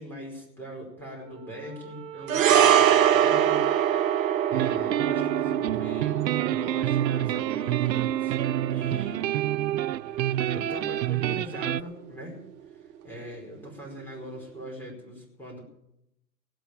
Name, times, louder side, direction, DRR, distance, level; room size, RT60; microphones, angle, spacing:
voice 1, 0.0-3.7 4.5-8.4 8.7-9.4 10.2-12.4 13.0-15.6, equal, 5° left, -2 dB, 5.0 m, -41 dB
Wind instrument woodwind instrument, 1.0-5.4, right 10 dB, 25° right, 1.1 m, -43 dB
sound 1, 2.3-10.8 11.0-11.2, right 10 dB, 50° right, 1.5 m, -25 dB
sound 2, 4.5-11.8, right 12 dB, 90° right, 0.6 m, -28 dB
17.0 x 7.7 x 8.8 m, 0.80 s
hypercardioid pair, 120°, 49 cm